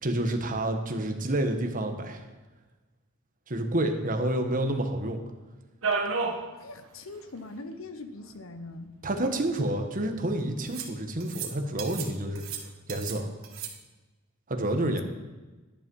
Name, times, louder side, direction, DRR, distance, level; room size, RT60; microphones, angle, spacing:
voice 1, 0.0-2.2 3.5-5.2 9.0-12.4 12.9-13.3 14.5-15.0, right 1 dB, 40° right, 5 dB, 1.4 m, -29 dB
sound 1, 5.8-6.5 6.8-6.9 7.2-7.3 8.3-8.4 9.1-9.8 10.7-10.9 11.2-11.5 11.8-12.1 12.4-13.2 13.4-13.7, right 4 dB, 90° right, 1.5 m, -32 dB
voice 2, 6.6-8.9 14.7-15.0, left 2 dB, 80° left, 9 dB, 1.0 m, -41 dB
11.5 x 10.5 x 5.5 m, 1.2 s
head